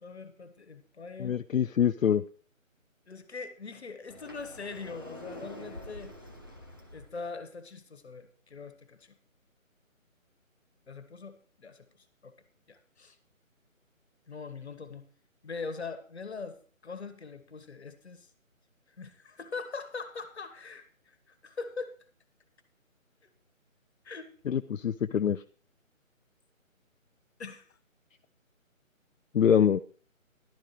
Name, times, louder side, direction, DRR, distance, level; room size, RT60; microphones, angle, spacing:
voice 1, 0.0-1.4 3.1-6.1 6.9-9.2 10.9-11.9 12.2-12.3 12.7-13.2 14.3-15.0 15.4-16.6 16.8-18.3 19.0-21.1 21.4-21.9 24.0-24.3 27.4-27.6, left 4 dB, 50° left, 10 dB, 1.5 m, -42 dB
voice 2, 1.2-2.2 24.5-25.4 29.3-29.8, left 8 dB, 70° left, 10 dB, 0.5 m, -25 dB
Sliding door, 4.1-7.1, left 1 dB, 15° right, 0.7 m, -46 dB
13.5 x 11.5 x 3.1 m, 0.41 s
figure-of-eight pair, 155°, 41 cm